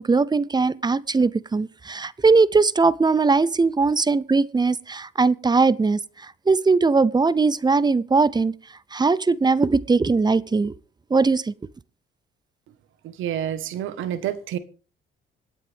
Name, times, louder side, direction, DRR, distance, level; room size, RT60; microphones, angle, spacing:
voice 1, 0.0-8.5 8.9-10.7 11.1-11.5, right 4 dB, 20° right, 0.6 m, -20 dB
voice 2, 13.0-14.6, right 10 dB, 85° right, 1.3 m, -28 dB
26.0 x 9.1 x 3.5 m
cardioid pair, 90°, 20 cm